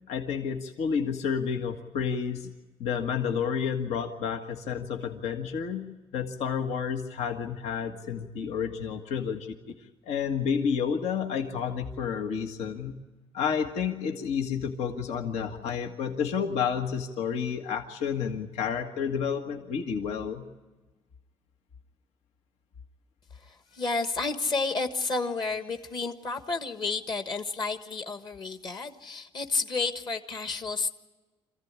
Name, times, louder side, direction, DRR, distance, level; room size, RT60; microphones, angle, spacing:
voice 1, 0.1-2.5 2.8-5.9 6.1-9.5 10.1-13.0 13.3-20.4, left 7 dB, 80° left, 4 dB, 1.7 m, -30 dB
voice 2, 23.4-30.9, left 3 dB, 40° left, 6 dB, 1.4 m, -31 dB
26.5 x 15.5 x 9.7 m, 1.2 s
cardioid pair, 135°, 11 cm